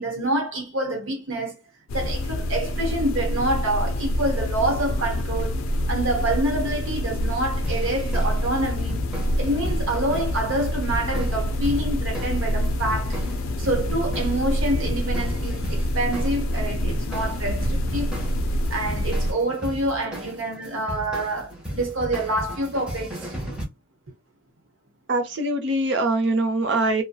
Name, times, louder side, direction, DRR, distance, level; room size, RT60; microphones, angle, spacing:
voice 1, 0.0-1.6 1.9-9.0 9.4-13.2 13.6-18.3 18.7-23.3, right 1 dB, 75° right, 0.9 m, -27 dB
sound 1, 1.9-19.3, left 1 dB, 80° left, 0.4 m, -26 dB
sound 2, 7.6-23.6, right 1 dB, 5° right, 0.7 m, -36 dB
voice 2, 25.1-27.0, right 2 dB, 55° right, 0.6 m, -23 dB
2.7 x 2.1 x 2.3 m
head